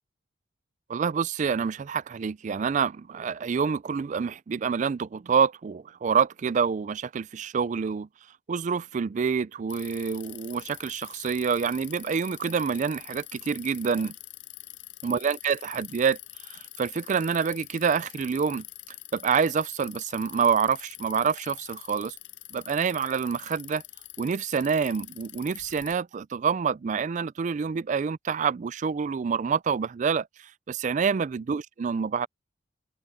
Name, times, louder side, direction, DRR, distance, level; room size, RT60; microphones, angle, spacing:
voice 1, 0.9-8.1 8.5-14.1 15.0-16.2 16.5-18.7 19.1-22.2 22.5-23.8 24.2-30.3 30.7-32.3, right 6 dB, 40° right, 0.3 m, -27 dB
Bicycle, 9.7-25.9, left 16 dB, 75° left, 6.6 m, -45 dB
open air
head